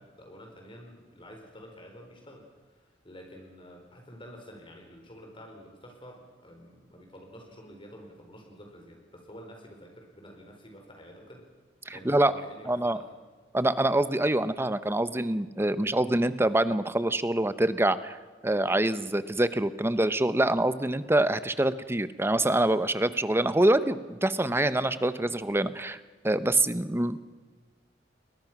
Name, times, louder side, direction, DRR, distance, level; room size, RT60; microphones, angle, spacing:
voice 1, 0.0-11.4 11.9-13.1, equal, 30° left, 2 dB, 4.3 m, -49 dB
voice 2, 11.9-12.3 12.7-13.0 13.5-18.2 18.4-26.0 26.2-27.2, right 1 dB, 15° right, 13 dB, 0.9 m, -25 dB
29.5 x 21.5 x 6.1 m, 1.4 s
head